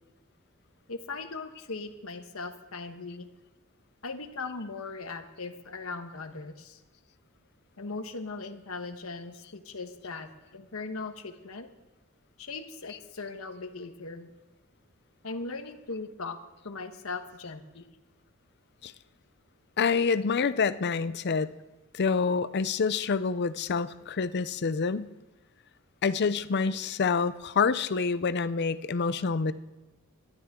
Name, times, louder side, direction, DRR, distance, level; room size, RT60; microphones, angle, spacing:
voice 1, 0.9-3.3 4.0-6.8 7.8-11.7 12.4-14.3 15.2-16.4 16.6-17.8, left 3 dB, 70° left, 7 dB, 1.2 m, -39 dB
voice 2, 19.8-21.5 21.9-25.1 26.0-29.5, left 5 dB, 50° left, 15 dB, 0.5 m, -27 dB
21.0 x 12.5 x 3.7 m, 1.1 s
head